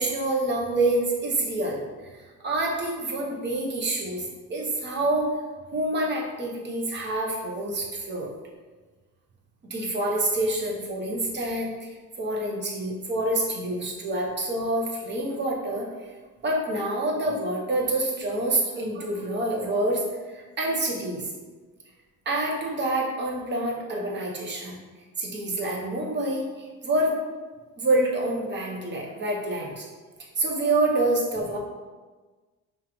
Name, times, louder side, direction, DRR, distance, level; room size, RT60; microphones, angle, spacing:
voice 1, 0.0-1.8 2.4-4.2 4.5-5.3 5.7-8.3 9.7-11.7 12.2-15.9 16.4-20.1 20.3-21.3 22.3-24.8 25.2-27.2 27.8-29.9 30.4-31.6, right 2 dB, 30° right, -1 dB, 0.9 m, -27 dB
5.5 x 2.4 x 3.0 m, 1.3 s
cardioid pair, 125°, 34 cm